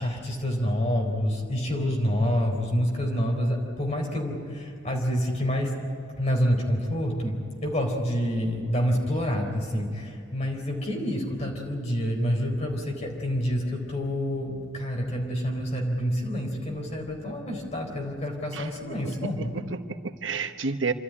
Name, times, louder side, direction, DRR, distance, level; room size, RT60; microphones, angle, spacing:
voice 1, 0.0-5.8 6.2-7.4 7.6-19.5, equal, 35° left, 1 dB, 4.1 m, -27 dB
voice 2, 19.0-20.9, right 4 dB, 85° right, 8 dB, 1.0 m, -31 dB
27.0 x 13.0 x 9.9 m, 2.5 s
head